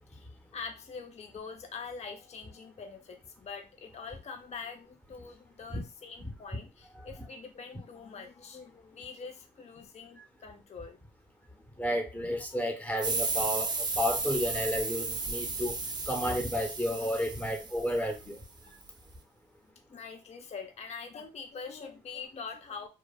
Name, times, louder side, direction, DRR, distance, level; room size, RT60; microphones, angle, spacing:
voice 1, 0.1-11.0 11.5-11.8 12.5-12.6 16.8-17.0 19.6-22.9, left 5 dB, 35° left, 0.5 m, -44 dB
voice 2, 11.8-15.8 16.1-18.4, equal, 10° left, 0.8 m, -32 dB
sound 1, 13.0-18.3, right 3 dB, 20° right, 0.5 m, -34 dB
2.8 x 2.3 x 2.3 m
cardioid pair, 90°, 20 cm